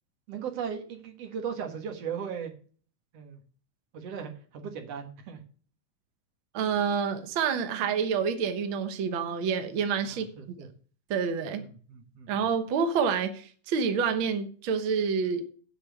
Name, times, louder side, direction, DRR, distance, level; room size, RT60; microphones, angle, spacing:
voice 1, 0.3-2.5 3.1-3.4 3.9-5.5 10.0-10.7 11.6-12.5, right 7 dB, 55° right, 2.1 m, -37 dB
voice 2, 6.5-10.3 11.1-11.6 12.3-15.4, right 6 dB, 85° right, 1.1 m, -28 dB
8.6 x 5.6 x 7.7 m
omnidirectional pair, 3.9 m